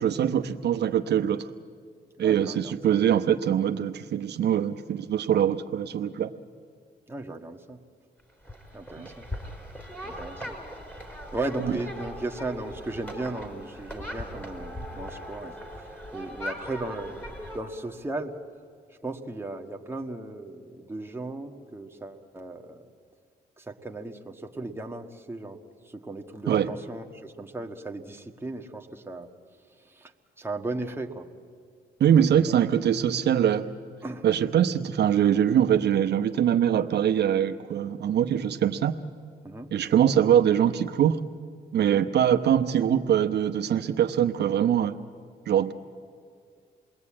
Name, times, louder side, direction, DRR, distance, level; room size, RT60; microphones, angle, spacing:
voice 1, 0.0-1.5 2.2-6.3 11.6-11.7 26.5-26.7 32.0-33.7 34.2-38.9 39.7-41.2 41.7-44.9 45.5-45.7, right 9 dB, 70° right, 7 dB, 0.9 m, -23 dB
voice 2, 2.2-3.0 7.1-7.8 8.7-9.3 10.0-10.6 11.3-18.4 18.9-22.9 23.6-25.6 25.8-29.3 29.8-30.1 30.4-31.3 34.0-34.2 39.4-39.7 41.8-42.0, right 2 dB, 15° right, 2 dB, 1.6 m, -36 dB
sound 1, 8.4-17.6, equal, 10° left, 4.3 m, -39 dB
28.0 x 20.5 x 8.7 m, 2.2 s
cardioid pair, 90°, 18 cm